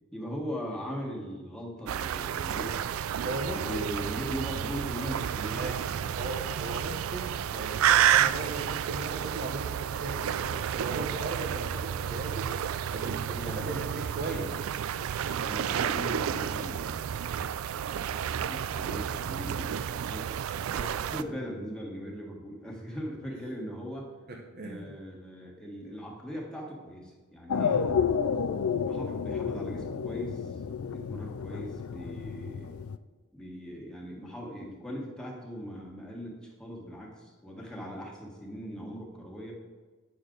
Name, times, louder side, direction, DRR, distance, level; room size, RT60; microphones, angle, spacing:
voice 1, 0.1-2.8 3.4-5.6 7.9-8.1 13.3-14.4 15.4-17.5 18.2-20.3 20.7-24.1 24.6-27.8 28.8-30.6 30.9-32.7 33.3-39.5, equal, 5° left, -3 dB, 1.6 m, -40 dB
sound 1, 1.9-21.2, right 9 dB, 75° right, 0.3 m, -30 dB
voice 2, 3.2-3.9 5.5-5.8 6.1-12.5 12.9-14.5 23.3-23.4 24.3-24.9 27.6-27.8, right 2 dB, 50° right, -1 dB, 0.9 m, -37 dB
sound 2, 27.5-33.0, left 6 dB, 90° left, 0.4 m, -30 dB
9.0 x 6.6 x 3.8 m, 1.4 s
head